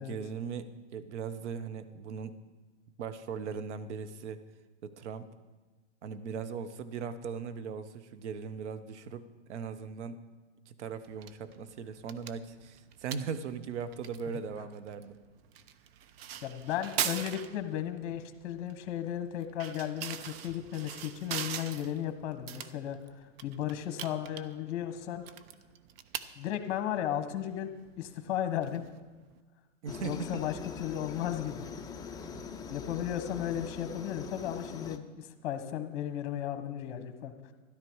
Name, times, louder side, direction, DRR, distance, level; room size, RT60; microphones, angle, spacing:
voice 1, 0.0-2.4 3.0-4.4 4.8-5.3 6.0-10.2 10.7-15.2 29.8-30.4 32.3-32.5, right 6 dB, 70° right, 11 dB, 1.1 m, -39 dB
sound 1, 11.0-29.4, right 10 dB, 55° right, 0.8 m, -43 dB
voice 2, 16.4-25.2 26.4-28.8 30.0-30.5 30.8-31.7 32.1-32.3 32.7-37.5, left 10 dB, 45° left, 8 dB, 1.4 m, -35 dB
Aircraft, 29.9-35.0, left 5 dB, 10° left, 0.6 m, -43 dB
13.0 x 11.5 x 4.7 m, 1.3 s
hypercardioid pair, 125°, 36 cm